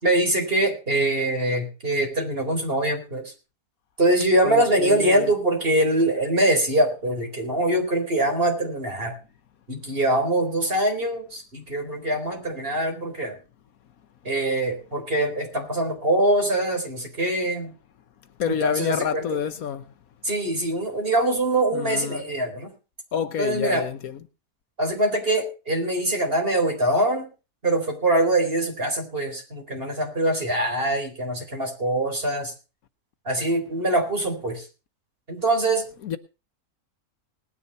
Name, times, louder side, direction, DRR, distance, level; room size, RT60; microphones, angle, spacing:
voice 1, 0.0-3.3 4.0-9.2 9.7-13.4 14.2-17.7 18.5-19.4 20.2-22.7 23.4-23.9 24.8-27.3 27.6-32.5 33.2-34.7 35.3-35.9, right 1 dB, 35° right, 4.3 m, -23 dB
voice 2, 4.4-5.3 18.4-19.8 21.7-22.2 23.1-24.2 36.0-36.2, left 8 dB, 70° left, 1.3 m, -28 dB
19.5 x 10.0 x 4.1 m
omnidirectional pair, 1.6 m